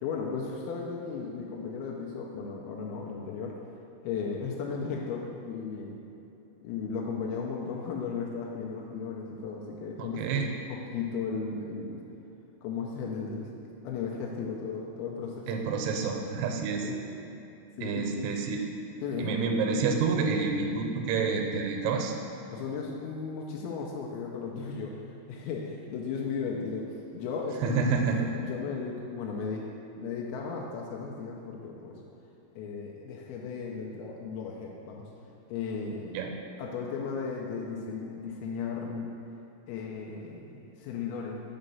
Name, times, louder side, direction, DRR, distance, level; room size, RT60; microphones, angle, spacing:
voice 1, 0.0-3.5 4.0-6.0 6.6-12.0 12.6-13.5 13.8-15.6 16.8-17.0 17.8-18.2 19.0-19.3 22.5-25.0 25.3-27.8 28.1-32.0 32.6-35.1 35.5-36.2 36.6-39.1 39.7-41.4, left 5 dB, 80° left, -2 dB, 2.3 m, -35 dB
voice 2, 10.0-10.5 15.5-16.9 17.8-18.6 19.2-22.1 27.6-28.3 36.1-36.3, right 5 dB, 90° right, 2 dB, 2.7 m, -28 dB
5.6 x 4.0 x 5.3 m, 2.9 s
omnidirectional pair, 4.7 m